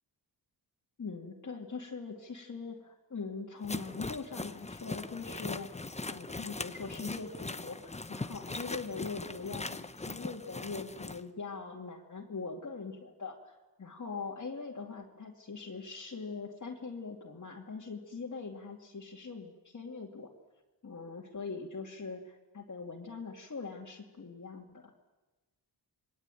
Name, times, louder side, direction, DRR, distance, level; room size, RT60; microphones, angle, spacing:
voice 1, 1.0-20.3 20.8-24.9, left 4 dB, 45° left, -2 dB, 2.7 m, -42 dB
sound 1, 3.6-11.2, left 3 dB, 15° left, 1.0 m, -40 dB
28.0 x 21.5 x 9.2 m, 1.2 s
wide cardioid pair, 110°, 41 cm